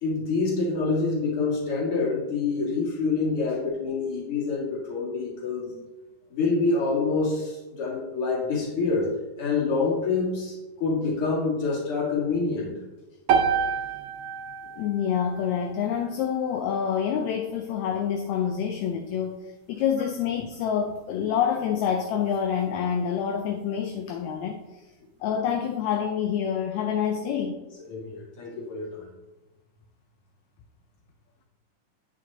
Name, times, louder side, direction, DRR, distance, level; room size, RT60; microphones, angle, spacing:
voice 1, 0.0-5.7 6.3-9.1 9.4-12.8 27.9-29.1, left 4 dB, 50° left, -5 dB, 2.6 m, -26 dB
sound 1, 13.3-17.5, right 6 dB, 80° right, 1.3 m, -29 dB
voice 2, 14.8-19.4 19.7-24.6 25.2-27.6, left 8 dB, 80° left, 4 dB, 1.7 m, -27 dB
8.3 x 7.7 x 2.7 m, 1.1 s
omnidirectional pair, 3.5 m